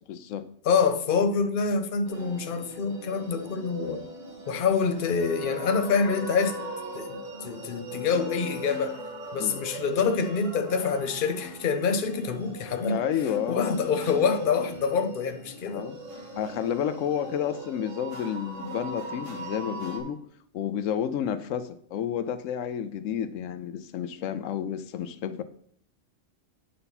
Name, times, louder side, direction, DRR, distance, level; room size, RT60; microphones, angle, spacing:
voice 1, 0.1-0.5 9.4-9.6 12.8-13.8 15.7-16.0 16.4-20.2 20.5-25.4, left 9 dB, 85° left, 1.0 m, -30 dB
voice 2, 0.7-4.0 4.5-6.6 6.9-9.0 9.3-13.0 13.5-15.8, left 5 dB, 50° left, 0.8 m, -26 dB
sound 1, 2.1-20.0, equal, 80° right, 2.0 m, -39 dB
9.6 x 5.5 x 4.1 m
omnidirectional pair, 1.3 m